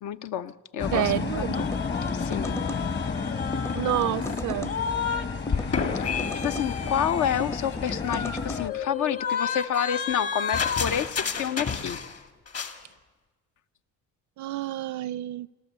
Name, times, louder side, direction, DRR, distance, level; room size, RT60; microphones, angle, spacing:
voice 1, 0.0-1.7 2.1-2.8 6.0-6.1 6.3-12.0, left 9 dB, 75° left, 11 dB, 0.9 m, -29 dB
sound 1, 0.8-8.7, left 4 dB, 35° left, 1.2 m, -32 dB
voice 2, 0.9-1.6 3.7-4.7 14.4-15.5, right 14 dB, 75° right, 22 dB, 0.5 m, -28 dB
sound 2, 1.5-5.3 5.5-12.2 12.5-12.8, left 6 dB, 55° left, 2.1 m, -31 dB
sound 3, 1.6-2.8 3.5-4.8 5.5-6.7 7.4-8.6, left 2 dB, 10° left, 0.5 m, -36 dB
26.5 x 13.0 x 8.1 m, 1.3 s
cardioid pair, 90°, 30 cm